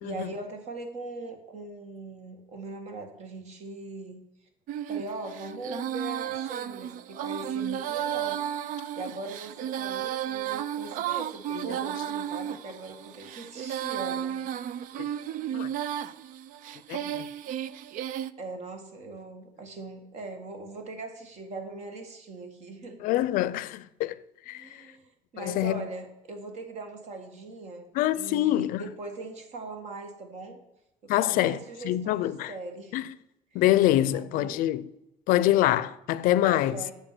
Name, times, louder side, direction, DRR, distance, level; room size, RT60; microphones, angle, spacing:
voice 1, 0.0-4.2 4.9-8.4 9.0-14.7 18.4-23.0 24.5-30.6 31.0-33.0 33.5-33.6 34.1-34.7 36.4-36.9, right 2 dB, 50° right, 1.9 m, -40 dB
Female singing, 4.7-18.3, right 10 dB, 65° right, 0.5 m, -33 dB
voice 2, 16.9-17.3 23.0-24.2 24.5-24.7 25.4-25.8 27.9-28.8 31.1-31.6 31.8-32.5 32.9-33.1 33.5-34.9 35.3-36.8, left 14 dB, 75° left, 0.5 m, -25 dB
9.0 x 6.9 x 6.0 m
cardioid pair, 145°, 15 cm